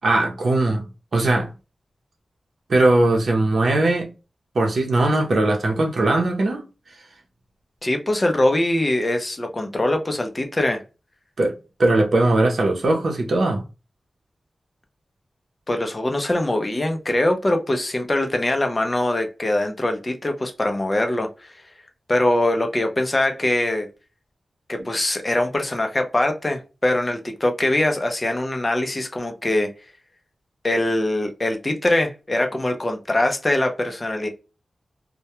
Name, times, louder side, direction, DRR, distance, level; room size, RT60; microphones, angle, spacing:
voice 1, 0.0-0.9 1.1-1.5 2.7-4.1 4.5-6.6 11.4-13.6, right 2 dB, 65° right, 0.6 m, -19 dB
voice 2, 7.8-10.8 15.7-21.3 22.1-23.9 24.7-29.7 30.6-34.3, left 1 dB, 25° left, 0.5 m, -22 dB
2.2 x 2.1 x 2.8 m
wide cardioid pair, 105°, 0 cm